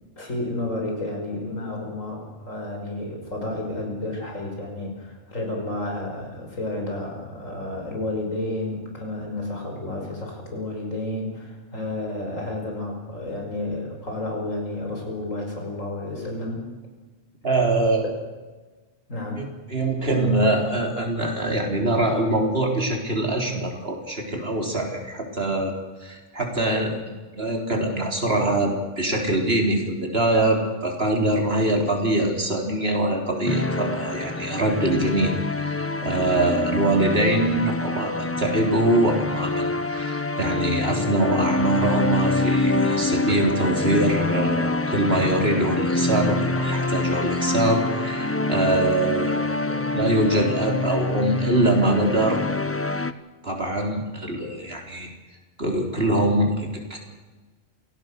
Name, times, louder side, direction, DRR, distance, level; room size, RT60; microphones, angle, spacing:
voice 1, 0.2-16.6 19.1-19.4, left 2 dB, 85° left, 1 dB, 6.0 m, -31 dB
voice 2, 17.4-18.1 19.4-25.7 26.0-27.0 27.3-52.4 52.9-53.0 53.4-55.1 55.6-57.0, right 1 dB, 50° right, 2 dB, 4.0 m, -23 dB
sound 1, 33.5-53.1, left 2 dB, 15° left, 0.6 m, -26 dB
27.5 x 17.5 x 6.7 m, 1.3 s
omnidirectional pair, 1.3 m